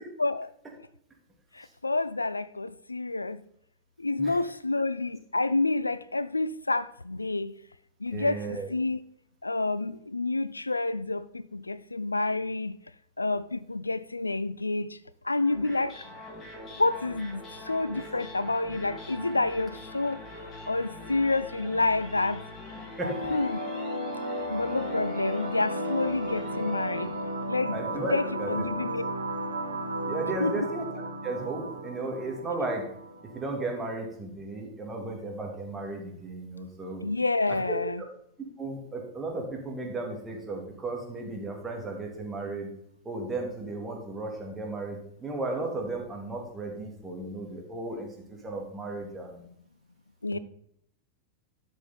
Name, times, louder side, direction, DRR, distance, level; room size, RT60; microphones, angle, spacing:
voice 1, 1.5-3.4 4.0-7.6 8.0-9.0 9.4-12.8 13.2-15.0 15.2-16.0 16.8-20.2 20.7-22.4 23.3-23.6 24.5-27.1 27.5-27.8 28.1-29.0 30.4-30.7 37.0-38.0 50.2-50.4, left 2 dB, 80° left, 0.4 m, -28 dB
voice 2, 8.1-8.7 23.0-23.1 27.7-28.7 30.1-30.8 31.2-32.8 33.3-37.0 37.7-37.8 38.6-42.7 43.0-49.5 50.3-50.4, right 2 dB, 15° right, 2.5 m, -35 dB
sound 1, 15.4-27.6, left 1 dB, 25° left, 2.5 m, -44 dB
sound 2, 23.0-34.0, right 1 dB, 80° right, 1.0 m, -34 dB
12.5 x 5.3 x 4.2 m
figure-of-eight pair, 90°, 0 cm